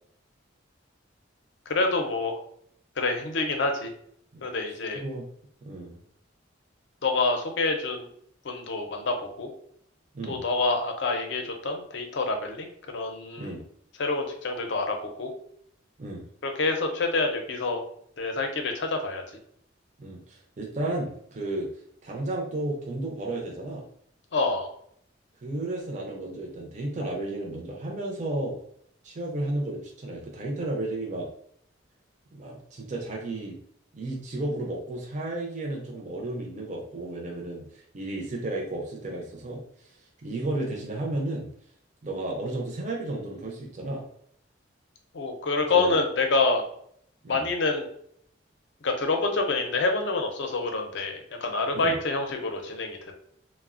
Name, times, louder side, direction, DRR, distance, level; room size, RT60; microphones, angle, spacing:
voice 1, 1.7-2.4 3.0-3.9 4.4-5.0 7.0-8.1 8.4-9.5 10.3-13.6 14.0-15.3 16.4-17.8 18.2-19.2 24.3-24.7 45.1-46.6 47.3-47.9 48.8-53.1, left 3 dB, 65° left, 4 dB, 0.5 m, -27 dB
voice 2, 4.9-5.3 5.6-6.0 10.1-10.4 13.4-13.6 16.0-16.2 20.0-21.7 22.0-23.8 25.4-28.6 29.0-31.3 32.3-33.6 33.9-39.9 40.2-41.5 42.0-44.0 45.7-46.0 47.2-47.5 51.7-51.9, right 2 dB, 35° right, -2 dB, 0.4 m, -33 dB
3.1 x 2.0 x 2.4 m, 0.67 s
head